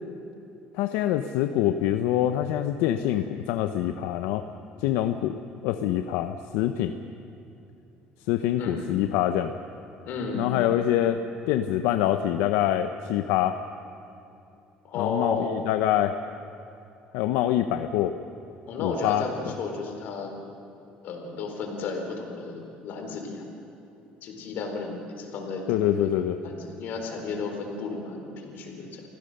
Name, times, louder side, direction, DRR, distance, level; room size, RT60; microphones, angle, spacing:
voice 1, 0.7-4.5 4.8-6.9 8.3-9.5 10.3-11.2 11.5-13.6 15.0-16.2 17.1-18.2 18.8-19.2 25.7-26.4, left 12 dB, 90° left, 8 dB, 0.7 m, -25 dB
voice 2, 10.1-10.7 14.8-15.5 18.7-20.3 21.0-23.5 24.2-26.1 26.4-29.0, left 4 dB, 65° left, 3 dB, 4.0 m, -33 dB
25.5 x 15.5 x 6.7 m, 2.8 s
cardioid pair, 125°, 3 cm